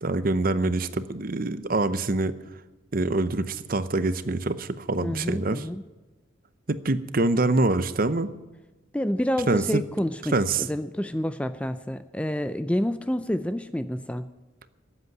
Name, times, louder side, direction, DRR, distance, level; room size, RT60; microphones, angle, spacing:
voice 1, 0.0-2.3 2.9-5.7 6.7-8.3 9.5-9.8 10.3-10.7, right 2 dB, 45° right, 13 dB, 0.7 m, -25 dB
voice 2, 5.0-5.8 8.9-10.3 10.6-14.3, equal, 5° left, 11 dB, 0.4 m, -28 dB
13.5 x 8.3 x 9.4 m, 1.1 s
head